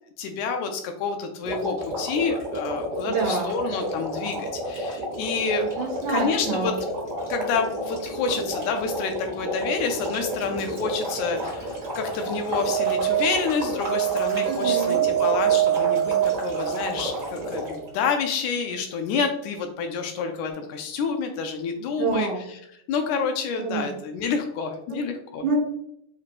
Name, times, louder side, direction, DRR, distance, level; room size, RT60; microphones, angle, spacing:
voice 1, 0.2-5.6 6.1-6.7 7.3-22.6 22.9-25.4, left 5 dB, 80° left, 5 dB, 1.8 m, -28 dB
sound 1, 1.4-17.9, equal, 45° right, 1.1 m, -31 dB
voice 2, 3.0-3.5 5.8-6.8 14.5-15.1 22.0-22.4 23.6-23.9 24.9-25.0 25.4-25.6, right 5 dB, 70° right, -3 dB, 2.1 m, -27 dB
sound 2, 12.3-17.2, right 12 dB, 60° left, 1.3 m, -24 dB
5.8 x 3.0 x 2.4 m, 0.75 s
omnidirectional pair, 3.8 m